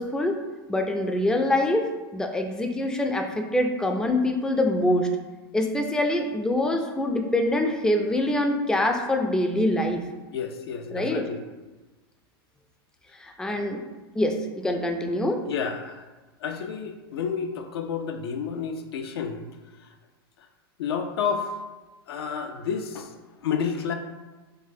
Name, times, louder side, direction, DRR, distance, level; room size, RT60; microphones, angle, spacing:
voice 1, 0.0-5.1 5.5-10.0 10.9-11.3 13.2-13.8 14.1-15.4, left 1 dB, 5° left, 4 dB, 0.3 m, -25 dB
voice 2, 10.3-11.4 13.5-13.6 15.5-16.0 16.4-19.5 20.8-21.5 22.1-23.1 23.4-23.9, left 6 dB, 75° left, 6 dB, 0.4 m, -30 dB
3.9 x 2.4 x 2.6 m, 1.2 s
hypercardioid pair, 100°, 13 cm